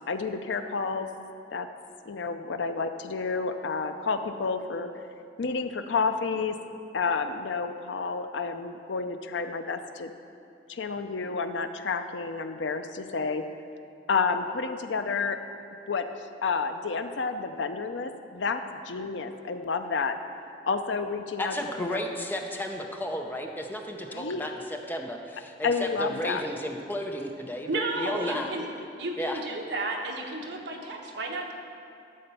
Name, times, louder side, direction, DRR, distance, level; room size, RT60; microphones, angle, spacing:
voice 1, 0.1-1.1 1.5-1.7 2.1-4.9 5.4-6.6 6.9-10.1 10.7-13.4 14.1-15.4 15.9-16.1 16.4-20.2 20.7-22.0 24.1-24.4 25.6-26.4, left 4 dB, 80° left, 8 dB, 0.6 m, -30 dB
voice 2, 21.4-28.5 29.2-29.4, left 1 dB, 10° left, 2 dB, 0.7 m, -33 dB
voice 3, 27.7-28.7 29.0-31.5, right 2 dB, 65° right, 0 dB, 1.2 m, -32 dB
12.0 x 4.4 x 6.9 m, 2.5 s
head